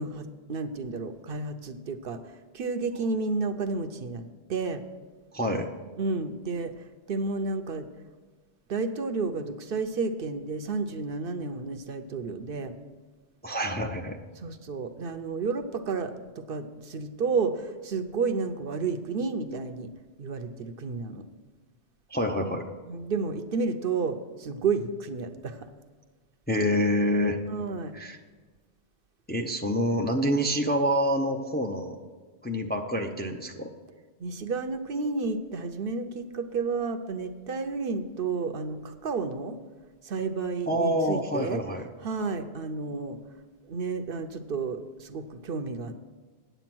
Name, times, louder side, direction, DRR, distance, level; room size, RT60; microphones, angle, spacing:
voice 1, 0.0-2.2 2.5-4.8 6.0-7.9 8.7-12.7 14.4-19.9 20.2-21.2 22.9-25.7 27.5-27.9 34.2-39.6 40.0-41.6 42.0-43.2 43.6-45.9, right 4 dB, 65° right, 8 dB, 0.8 m, -31 dB
voice 2, 5.3-5.7 13.4-14.2 22.1-22.6 26.5-27.4 27.9-28.2 29.3-32.0 32.4-33.7 40.7-41.8, equal, 10° left, 3 dB, 0.5 m, -27 dB
9.1 x 7.9 x 6.0 m, 1.4 s
omnidirectional pair, 1.1 m